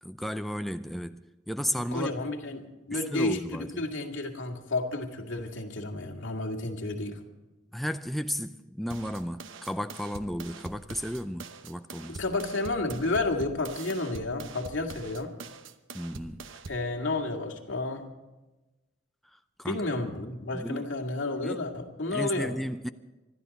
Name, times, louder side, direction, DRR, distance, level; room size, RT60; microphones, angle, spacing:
voice 1, 0.0-2.1 2.9-3.8 7.7-12.2 15.9-16.4 19.2-19.8 20.5-20.9 21.4-21.7 22.1-22.9, equal, ahead, 0.4 m, -34 dB
voice 2, 1.9-7.2 12.1-15.3 16.7-18.0 19.6-22.5, left 2 dB, 85° left, 2.2 m, -31 dB
sound 1, 8.9-16.9, right 4 dB, 90° right, 0.9 m, -44 dB
25.5 x 12.0 x 4.2 m
head